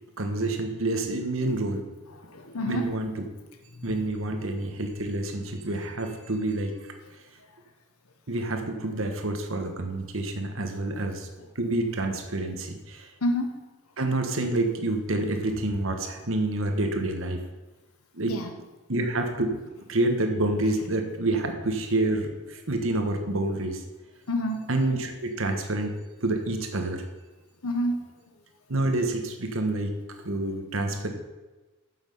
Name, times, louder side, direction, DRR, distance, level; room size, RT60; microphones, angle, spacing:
voice 1, 0.2-1.8 2.7-3.1 3.8-6.9 8.3-11.3 11.5-13.1 14.0-17.4 18.1-18.3 18.9-19.6 19.9-23.8 24.7-25.9 26.2-27.0 28.7-29.9 30.2-31.1, right 2 dB, 65° right, 5 dB, 1.3 m, -28 dB
voice 2, 2.1-2.9 3.7-4.0 11.4-11.5 13.2-13.6 18.3-18.5 24.3-24.7 27.6-28.1, left 1 dB, 85° left, 5 dB, 1.2 m, -29 dB
9.5 x 7.2 x 5.5 m, 1.2 s
head